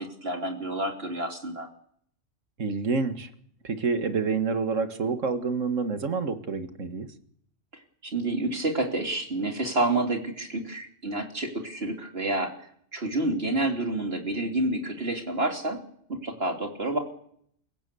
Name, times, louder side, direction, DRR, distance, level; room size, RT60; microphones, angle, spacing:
voice 1, 0.0-1.7 8.0-12.5 12.9-15.8 16.1-17.0, right 2 dB, 50° right, 2 dB, 3.5 m, -29 dB
voice 2, 2.6-3.3 3.6-7.1, right 4 dB, 80° right, 8 dB, 2.1 m, -28 dB
28.0 x 16.5 x 6.9 m, 0.65 s
omnidirectional pair, 1.3 m